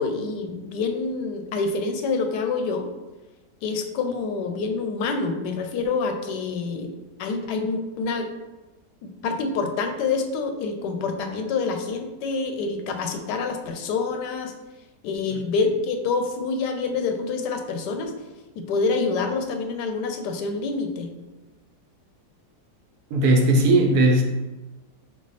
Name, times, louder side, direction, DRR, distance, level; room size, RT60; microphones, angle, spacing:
voice 1, 0.0-2.9 3.6-6.9 7.2-8.3 9.0-14.5 15.0-18.1 18.6-21.1, left 4 dB, 80° left, 5 dB, 1.1 m, -27 dB
voice 2, 23.1-24.2, right 1 dB, 75° right, 2 dB, 1.1 m, -18 dB
4.7 x 2.1 x 4.0 m, 1.1 s
omnidirectional pair, 1.8 m